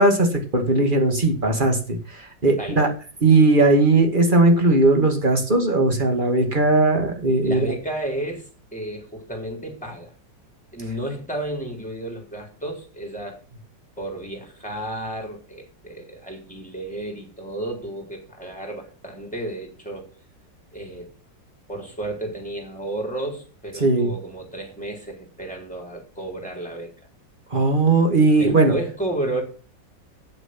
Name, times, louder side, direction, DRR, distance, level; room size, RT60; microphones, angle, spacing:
voice 1, 0.0-2.9 3.2-7.6 23.8-24.1 27.5-28.8, right 2 dB, 25° right, 2.3 m, -18 dB
voice 2, 2.6-2.9 7.4-8.4 8.7-10.1 10.7-13.4 14.0-20.1 20.7-21.1 21.7-26.9 28.4-29.4, right 1 dB, 5° left, 4.2 m, -32 dB
9.1 x 8.0 x 7.6 m
omnidirectional pair, 2.0 m